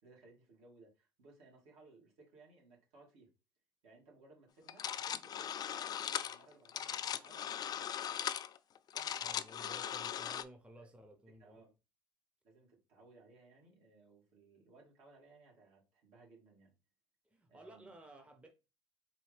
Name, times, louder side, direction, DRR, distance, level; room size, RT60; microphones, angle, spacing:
voice 1, 0.0-3.3 3.8-8.0 8.9-10.4 10.8-10.9 11.4-11.7 12.4-16.7 17.5-18.0, right 3 dB, 65° right, 2.2 m, -62 dB
sound 1, 4.7-10.4, left 9 dB, 35° left, 0.3 m, -39 dB
voice 2, 9.2-11.6 17.3-18.5, right 1 dB, 10° right, 0.7 m, -56 dB
4.1 x 2.8 x 3.2 m
supercardioid pair, 85°, 11 cm